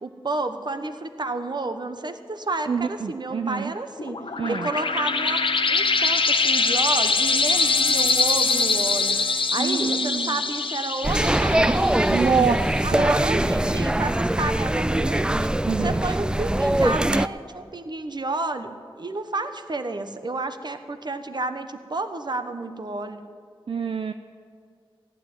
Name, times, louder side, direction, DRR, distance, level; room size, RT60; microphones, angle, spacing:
voice 1, 0.0-5.4 5.7-12.0 12.8-15.5 15.8-23.2, right 2 dB, 50° right, 8 dB, 1.2 m, -31 dB
voice 2, 2.7-3.7 4.4-4.7 9.6-10.4 12.1-13.2 15.7-16.0 23.7-24.1, right 6 dB, 70° right, 7 dB, 0.6 m, -26 dB
sound 1, 4.0-13.2, left 4 dB, 65° left, 1.0 m, -23 dB
sound 2, 11.0-17.3, right 1 dB, 10° right, 0.3 m, -22 dB
15.0 x 9.7 x 9.4 m, 2.4 s
cardioid pair, 55°, 10 cm